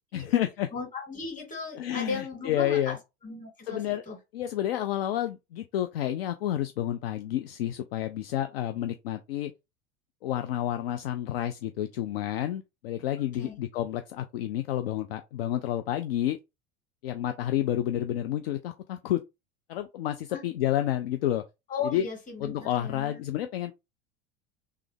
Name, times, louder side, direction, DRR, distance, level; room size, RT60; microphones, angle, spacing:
voice 1, 0.1-0.7 1.8-3.0 3.7-4.0 4.3-9.5 10.2-16.4 17.0-19.2 19.7-21.4 21.8-22.1 22.4-23.7, left 12 dB, 55° left, 0.5 m, -30 dB
voice 2, 0.7-3.0 3.2-4.2 13.4-13.6 20.3-20.4 21.7-23.2, left 4 dB, 20° left, 2.1 m, -36 dB
3.3 x 3.2 x 3.4 m
figure-of-eight pair, 80°, 36 cm